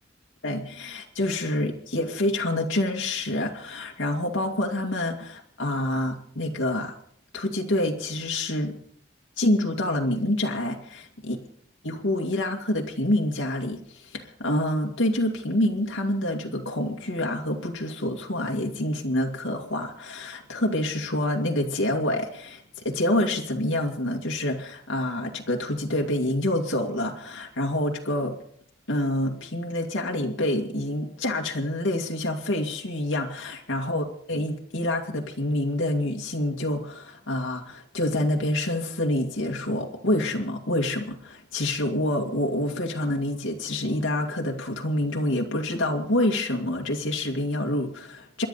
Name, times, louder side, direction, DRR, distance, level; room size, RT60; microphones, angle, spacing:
voice 1, 0.4-6.9 7.3-8.7 9.4-11.4 11.8-28.4 28.9-48.5, left 1 dB, 85° left, 0 dB, 2.2 m, -27 dB
27.5 x 11.5 x 4.1 m, 0.64 s
head